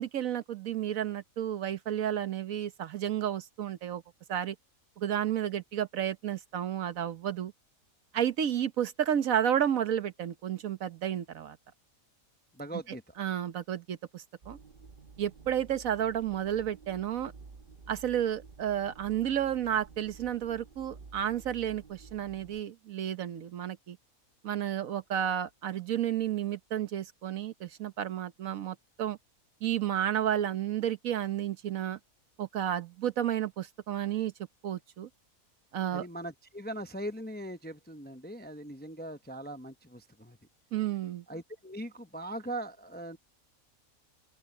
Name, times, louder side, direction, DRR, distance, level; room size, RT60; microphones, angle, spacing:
voice 1, 0.0-4.0 4.3-4.5 5.0-7.5 8.1-11.6 12.9-14.6 15.2-17.3 17.9-24.0 24.4-29.2 29.6-32.0 32.4-34.3 34.6-35.1 35.7-36.1 40.7-41.2, right 10 dB, 70° right, 1.3 m, -31 dB
voice 2, 12.5-13.1 35.9-40.4 41.3-43.2, right 1 dB, 10° left, 0.6 m, -40 dB
sound 1, 14.4-22.6, right 4 dB, 40° right, 1.2 m, -52 dB
open air
omnidirectional pair, 1.5 m